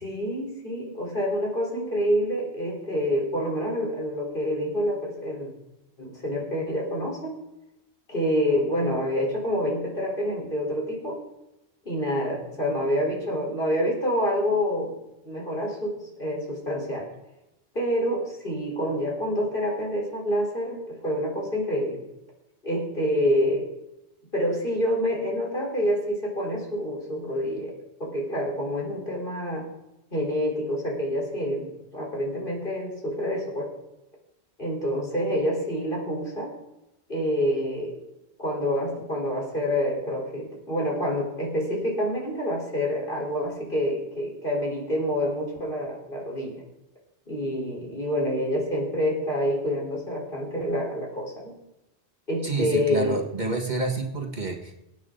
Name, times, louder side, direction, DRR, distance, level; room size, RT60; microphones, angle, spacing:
voice 1, 0.0-5.5 6.0-7.4 8.1-11.2 11.8-15.0 15.2-17.1 17.7-22.0 22.6-23.7 24.3-27.7 28.0-29.7 30.1-33.7 34.6-36.5 37.1-37.9 38.4-46.6 47.3-51.5 52.3-53.2, equal, 55° left, -2 dB, 4.5 m, -27 dB
voice 2, 52.4-54.7, right 3 dB, 45° right, 1 dB, 1.9 m, -28 dB
25.0 x 9.4 x 4.0 m, 0.93 s
omnidirectional pair, 1.1 m